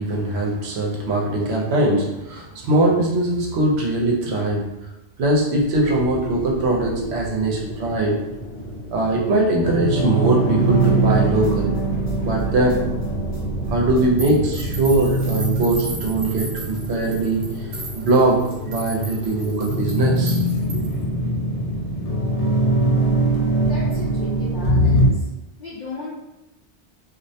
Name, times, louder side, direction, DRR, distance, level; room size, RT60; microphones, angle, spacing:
voice 1, 0.0-4.6 5.2-8.1 8.9-11.7 12.2-12.8 13.7-17.4 17.9-18.4 18.6-20.4, right 2 dB, 70° right, -1 dB, 0.9 m, -21 dB
sound 1, 5.7-25.1, right 1 dB, 85° left, 0.9 m, -24 dB
sound 2, 10.8-13.1 13.3-15.6, equal, 25° left, 0.8 m, -38 dB
sound 3, 14.2-21.0, right 2 dB, 45° right, 0.5 m, -37 dB
voice 2, 23.6-25.3 25.6-26.1, left 2 dB, 55° left, -8 dB, 0.5 m, -35 dB
2.4 x 2.0 x 2.7 m, 0.96 s
omnidirectional pair, 1.2 m